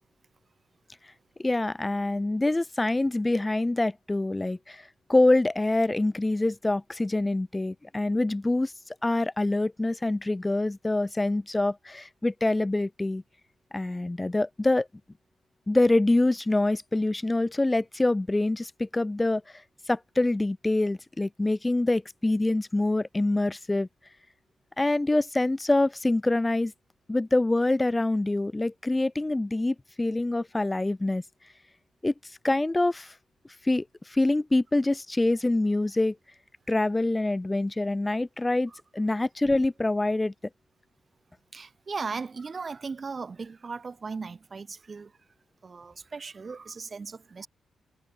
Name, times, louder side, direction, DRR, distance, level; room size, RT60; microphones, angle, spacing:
voice 1, 1.4-8.7 9.0-13.2 13.7-14.9 15.7-19.4 19.9-23.9 24.8-26.7 27.1-31.2 32.0-32.1 32.4-33.1 33.6-36.2 36.7-40.3, left 2 dB, 20° left, 2.2 m, -25 dB
voice 2, 41.5-45.1 45.6-47.5, right 4 dB, 45° right, 2.9 m, -37 dB
supercardioid pair, 45°, 0 cm